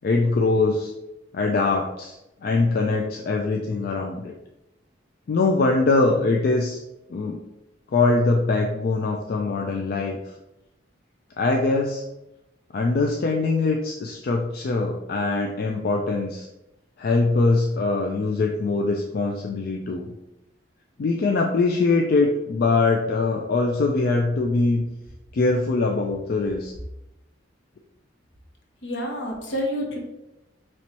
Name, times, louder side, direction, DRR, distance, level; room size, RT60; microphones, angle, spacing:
voice 1, 0.0-0.9 1.3-2.1 2.4-4.3 5.3-6.8 7.1-7.4 7.9-10.2 11.4-12.0 12.7-16.5 17.0-20.1 21.0-24.8 25.3-26.7, left 3 dB, 50° left, 1 dB, 0.3 m, -22 dB
voice 2, 28.8-30.0, equal, 75° left, 0 dB, 0.9 m, -28 dB
4.4 x 3.1 x 2.9 m, 0.93 s
head